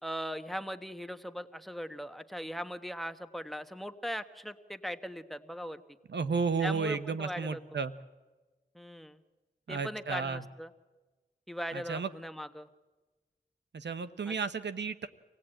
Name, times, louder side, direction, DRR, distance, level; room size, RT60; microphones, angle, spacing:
voice 1, 0.0-5.8 6.6-7.6 8.7-9.2 9.7-10.7 11.5-12.7 14.3-14.4, equal, ahead, 10 dB, 1.3 m, -39 dB
voice 2, 6.1-7.9 9.7-10.4 11.7-12.1 13.7-15.1, right 5 dB, 75° right, 11 dB, 0.9 m, -33 dB
25.5 x 17.0 x 9.0 m, 1.2 s
cardioid pair, 40°, 18 cm